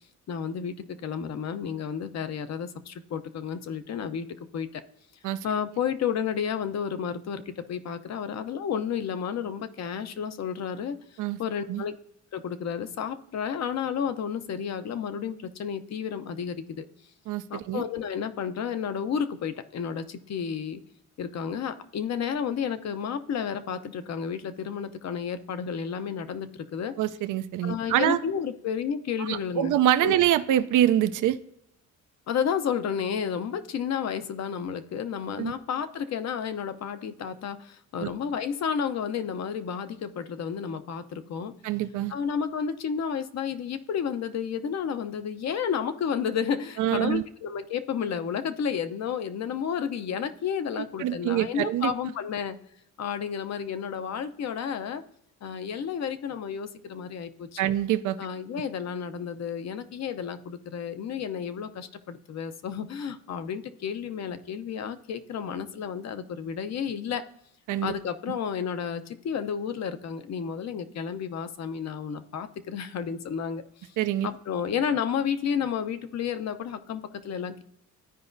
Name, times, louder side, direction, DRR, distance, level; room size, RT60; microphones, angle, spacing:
voice 1, 0.3-4.8 5.4-11.0 11.4-11.9 12.3-16.8 17.5-20.8 21.2-26.9 27.6-29.7 30.0-30.2 32.3-41.5 42.1-52.6 53.0-55.0 55.4-57.6 58.2-67.2 67.8-74.0 74.2-77.6, left 7 dB, 55° left, 10 dB, 0.7 m, -31 dB
voice 2, 17.3-17.8 27.0-28.2 29.2-31.4 35.4-35.5 38.0-38.1 41.6-42.1 46.8-47.2 51.0-51.9 57.6-58.2 67.7-67.9 74.0-74.3, right 12 dB, 70° right, 12 dB, 0.5 m, -25 dB
13.5 x 4.8 x 2.6 m, 0.75 s
cardioid pair, 110°, 32 cm